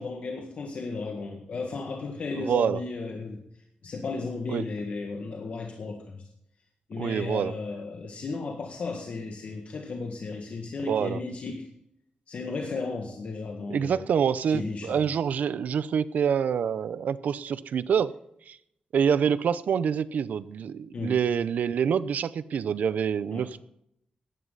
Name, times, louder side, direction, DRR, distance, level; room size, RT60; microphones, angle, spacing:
voice 1, 0.0-3.4 3.8-6.2 6.9-11.7 12.3-14.0 14.5-15.1 20.9-21.2 23.3-23.5, left 3 dB, 55° left, 2 dB, 1.8 m, -34 dB
voice 2, 2.4-2.8 4.5-4.6 7.0-7.5 10.8-11.2 13.7-18.1 18.5-18.6 18.9-23.6, right 7 dB, 85° right, 16 dB, 0.6 m, -26 dB
15.5 x 11.0 x 4.0 m, 0.74 s
wide cardioid pair, 155°, 3 cm